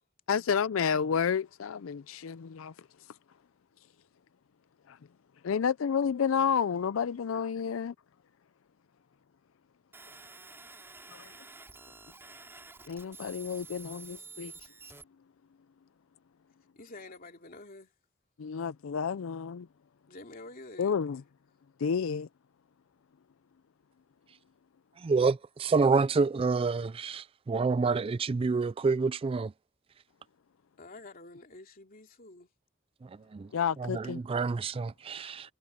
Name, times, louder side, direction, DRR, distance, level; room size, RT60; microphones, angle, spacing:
voice 1, 0.3-2.7 4.9-5.0 5.4-7.9 11.1-11.3 12.9-14.5 18.4-19.7 20.8-21.2 21.8-22.3 33.5-34.2, left 7 dB, 80° left, 0.4 m, -30 dB
sound 1, 9.9-15.0, right 4 dB, 10° right, 3.6 m, -49 dB
voice 2, 16.7-17.9 20.1-20.9 30.8-32.5, left 2 dB, 45° left, 2.8 m, -48 dB
voice 3, 25.0-29.5 33.0-33.5 33.8-35.5, right 4 dB, 30° right, 0.3 m, -28 dB
head